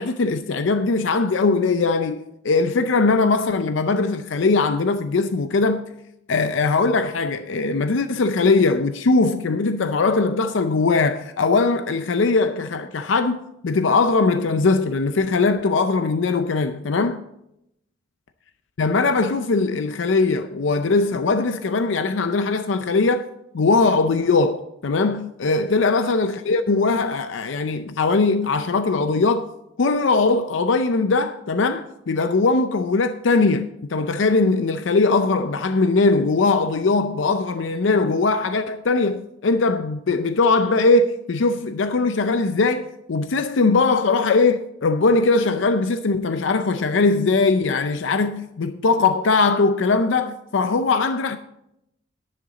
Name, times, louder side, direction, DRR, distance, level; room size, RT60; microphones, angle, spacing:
voice 1, 0.0-5.8 6.3-17.2 18.8-23.3 23.5-29.5 29.8-51.4, left 3 dB, 80° left, 0.5 m, -20 dB
11.0 x 10.5 x 4.0 m
head